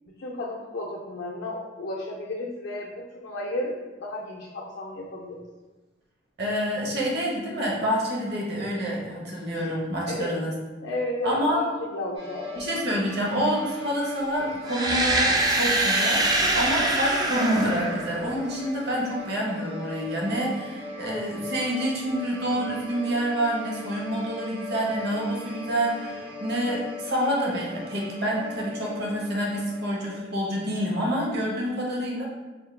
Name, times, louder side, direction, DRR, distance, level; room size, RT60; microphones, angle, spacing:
voice 1, 0.2-5.5 10.1-10.3 10.8-12.6, left 2 dB, 65° left, -2 dB, 0.5 m, -33 dB
voice 2, 6.4-10.5 11.2-11.6 12.6-32.3, equal, 60° right, -3 dB, 0.8 m, -27 dB
sound 1, 12.1-30.2, left 2 dB, 90° right, 1.2 m, -40 dB
sound 2, 14.7-18.6, right 2 dB, 20° right, 0.3 m, -24 dB
4.4 x 2.2 x 3.2 m, 1.2 s
head